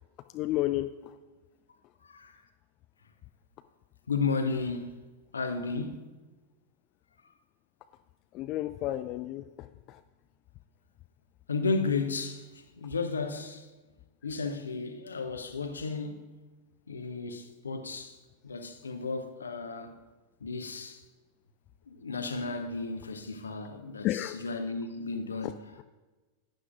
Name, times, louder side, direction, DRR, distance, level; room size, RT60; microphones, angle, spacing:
voice 1, 0.3-1.1 8.3-10.0 24.0-24.4, left 15 dB, 40° left, 0.3 m, -32 dB
voice 2, 2.0-2.4 4.1-5.0 5.3-6.1 11.5-13.7 14.2-16.2 16.9-18.2 18.4-20.0 20.4-21.0 21.9-25.7, left 4 dB, 75° left, 0.8 m, -33 dB
11.5 x 9.4 x 2.5 m
figure-of-eight pair, 90°, 0 cm